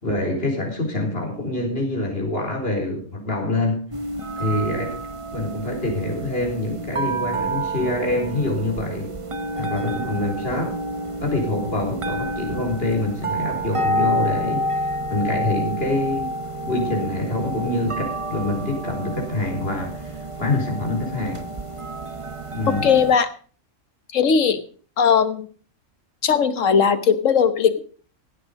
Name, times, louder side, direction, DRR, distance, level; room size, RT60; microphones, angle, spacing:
voice 1, 0.0-3.8 4.4-5.0 5.3-9.1 9.6-10.8 11.2-16.3 16.6-21.4 22.5-22.9, left 2 dB, 50° left, 1 dB, 4.5 m, -25 dB
sound 1, 3.9-23.2, right 1 dB, 25° right, 0.9 m, -29 dB
voice 2, 22.8-23.3 24.1-24.6 25.0-25.5 26.2-27.8, left 7 dB, 80° left, 12 dB, 1.5 m, -18 dB
16.0 x 9.0 x 5.2 m, 0.42 s
omnidirectional pair, 1.3 m